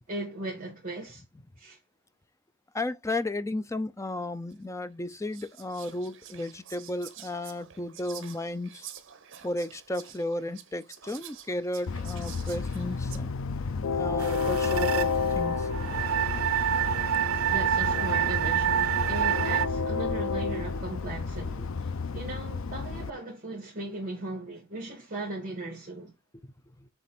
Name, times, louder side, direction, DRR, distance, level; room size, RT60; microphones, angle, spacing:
voice 1, 0.1-1.2 1.6-1.8 17.3-26.1, right 2 dB, 40° right, 2.5 m, -38 dB
voice 2, 2.7-8.9 9.4-13.3 13.9-15.9 21.6-21.7 26.3-26.9, left 1 dB, 15° left, 0.5 m, -34 dB
Whispering, 4.5-4.6 5.1-13.2, right 10 dB, 65° right, 1.1 m, -48 dB
Train, 11.9-23.1, left 4 dB, 75° left, 0.5 m, -31 dB
sound 1, 14.2-19.7, right 9 dB, 85° right, 0.5 m, -28 dB
7.4 x 3.4 x 4.3 m
head